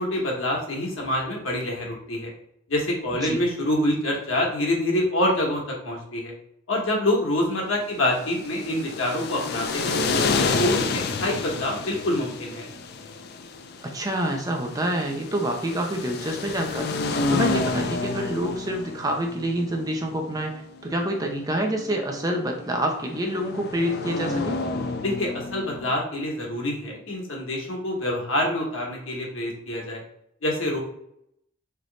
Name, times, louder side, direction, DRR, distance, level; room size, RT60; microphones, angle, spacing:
voice 1, 0.0-2.3 2.7-6.3 6.7-10.0 10.4-12.7 25.0-30.0 30.4-30.8, left 1 dB, 90° left, -1 dB, 1.3 m, -26 dB
sound 1, 8.0-25.9, left 4 dB, 50° left, 0.3 m, -30 dB
voice 2, 13.8-17.0 17.3-24.6, right 1 dB, 20° right, 2 dB, 0.5 m, -27 dB
3.3 x 3.0 x 3.9 m, 0.75 s
head